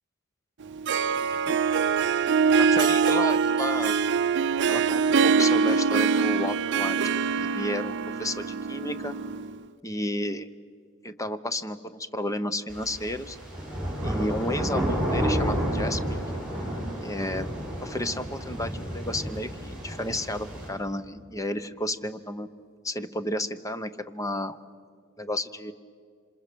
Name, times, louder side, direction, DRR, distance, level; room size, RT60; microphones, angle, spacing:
Harp, 0.6-9.6, right 5 dB, 55° right, 0.6 m, -24 dB
voice 1, 2.6-4.0 4.7-9.1 9.8-10.5 11.0-13.4 14.0-16.2 17.0-17.5 17.8-22.5 22.8-24.6 25.2-25.7, left 1 dB, 15° left, 11 dB, 0.8 m, -32 dB
sound 1, 12.7-20.7, equal, 5° right, 6.9 m, -30 dB
26.5 x 26.0 x 6.8 m, 2.1 s
head